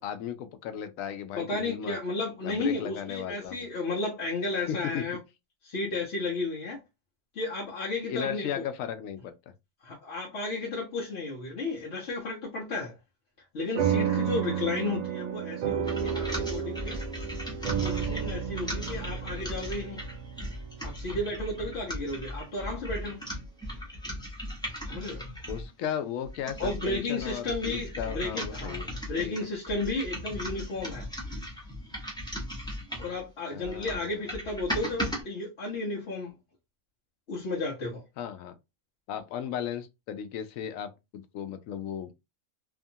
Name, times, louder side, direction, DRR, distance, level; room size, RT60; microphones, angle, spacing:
voice 1, 0.0-2.0 2.4-3.7 4.7-5.0 8.1-9.3 25.5-28.9 29.2-29.5 33.5-34.3 38.2-38.6 39.1-42.1, left 9 dB, 90° left, 1.0 m, -36 dB
voice 2, 1.4-5.2 5.6-6.8 7.3-8.5 9.8-12.9 13.5-17.0 17.8-20.0 20.8-23.2 24.8-25.3 26.6-31.1 33.0-36.3 37.3-38.0, left 2 dB, 60° left, 1.0 m, -33 dB
sound 1, 13.8-22.5, right 8 dB, 75° right, 0.4 m, -32 dB
sound 2, 15.8-25.7 26.2-33.2 33.6-35.2, equal, 5° left, 0.8 m, -37 dB
2.7 x 2.4 x 2.6 m
omnidirectional pair, 1.3 m